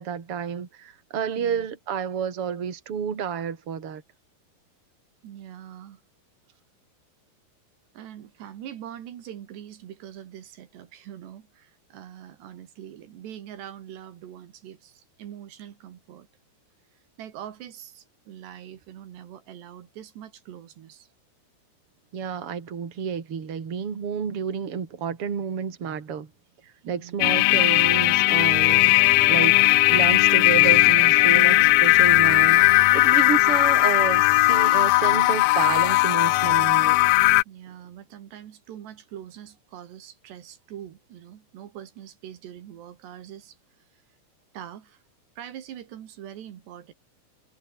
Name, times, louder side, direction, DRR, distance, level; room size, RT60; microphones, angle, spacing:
voice 1, 0.0-4.0 22.1-26.3 26.6-29.0 29.3-32.6 32.9-37.0, right 7 dB, 35° right, 3.5 m, -30 dB
voice 2, 1.4-1.7 5.2-6.0 7.9-16.3 16.9-21.1 26.8-27.2 33.1-33.4 37.5-44.0 44.5-45.0 45.4-46.9, right 10 dB, 80° right, 4.3 m, -43 dB
sound 1, 27.2-37.4, left 21 dB, 85° left, 2.3 m, -18 dB
omnidirectional pair, 4.8 m